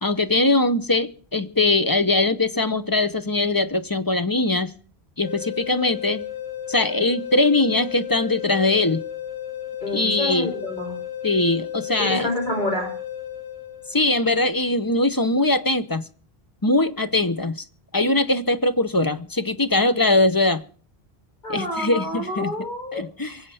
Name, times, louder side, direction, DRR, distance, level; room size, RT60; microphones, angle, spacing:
voice 1, 0.0-4.7 5.2-6.2 6.7-9.0 9.9-10.5 11.2-12.3 13.9-16.0 16.6-17.6 17.9-20.6 21.5-22.5 22.9-23.4, left 2 dB, 25° left, 0.7 m, -21 dB
sound 1, 5.2-14.2, left 11 dB, 80° left, 3.5 m, -34 dB
voice 2, 9.8-10.9 12.0-12.9 21.4-23.0, left 1 dB, 50° left, 5.9 m, -28 dB
23.5 x 8.0 x 5.5 m
omnidirectional pair, 1.0 m